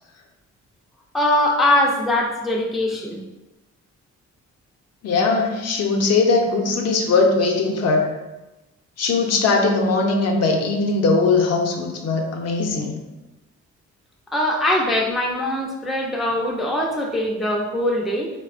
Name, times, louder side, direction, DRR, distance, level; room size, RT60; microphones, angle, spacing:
voice 1, 1.1-3.2 14.3-18.3, left 1 dB, ahead, -1 dB, 0.3 m, -22 dB
voice 2, 5.0-8.1 9.0-13.0, left 3 dB, 60° left, 2 dB, 0.5 m, -20 dB
3.3 x 2.1 x 2.4 m, 1.0 s
cardioid pair, 90°, 30 cm